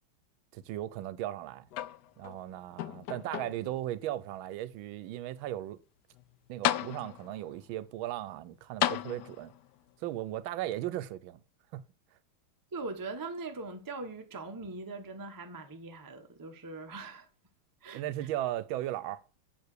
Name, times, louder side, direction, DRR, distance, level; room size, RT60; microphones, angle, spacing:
voice 1, 0.5-1.7 2.2-5.8 6.5-9.5 10.0-11.4 11.7-11.8 17.9-19.2, right 13 dB, 80° right, 1.3 m, -37 dB
sound 1, 1.7-2.4 2.8-3.8 4.5-4.6 6.2-6.3 6.6-7.4 8.8-9.6 10.7-10.8, left 13 dB, 75° left, 1.0 m, -33 dB
voice 2, 12.7-17.3 17.8-18.0, right 3 dB, 30° right, 0.3 m, -41 dB
8.0 x 4.7 x 6.7 m
omnidirectional pair, 2.2 m